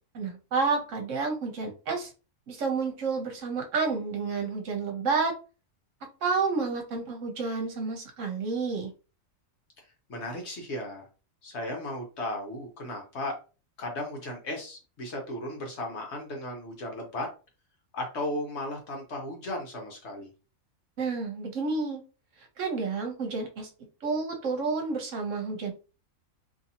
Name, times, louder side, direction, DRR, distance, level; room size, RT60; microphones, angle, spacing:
voice 1, 0.1-2.1 2.5-5.3 6.2-8.9 21.0-22.0 22.6-23.7 24.0-25.7, right 4 dB, 65° right, 3 dB, 1.0 m, -30 dB
voice 2, 10.1-11.1 11.4-13.4 13.8-17.3 17.9-20.3, left 1 dB, 55° left, 1 dB, 1.0 m, -35 dB
2.6 x 2.6 x 2.7 m, 0.33 s
omnidirectional pair, 1.5 m